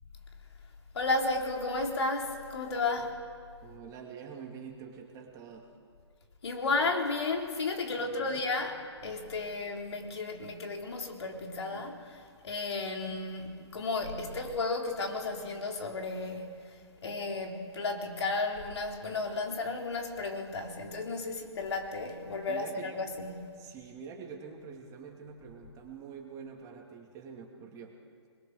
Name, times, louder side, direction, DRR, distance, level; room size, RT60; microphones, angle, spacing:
voice 1, 0.9-3.1 6.4-23.4, left 3 dB, 65° left, 3.6 m, -33 dB
voice 2, 3.6-5.7 7.9-8.4 22.5-22.9 23.6-27.9, right 6 dB, 20° right, 2.6 m, -46 dB
26.5 x 21.5 x 6.6 m
figure-of-eight pair, 135°, 15 cm